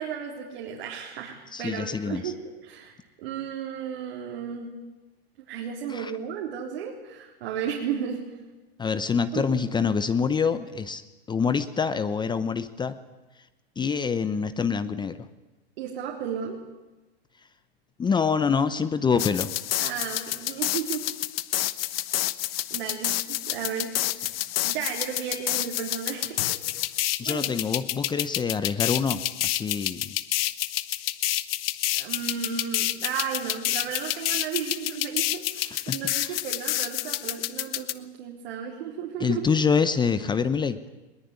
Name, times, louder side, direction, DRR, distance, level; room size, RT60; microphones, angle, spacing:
voice 1, 0.0-4.7 5.4-8.2 9.3-9.5 15.8-16.6 19.8-21.1 22.7-23.9 24.2-26.6 27.2-27.5 31.9-39.4, right 8 dB, 65° right, -1 dB, 3.9 m, -34 dB
voice 2, 1.5-2.3 5.9-6.1 8.8-11.0 11.3-13.0 13.8-15.2 18.0-19.5 27.2-30.1 35.9-36.4 39.2-40.8, left 6 dB, 15° left, 13 dB, 0.8 m, -26 dB
sound 1, 19.2-37.9, left 15 dB, 65° left, 1.2 m, -29 dB
21.0 x 19.0 x 9.7 m, 1.1 s
hypercardioid pair, 120°, 31 cm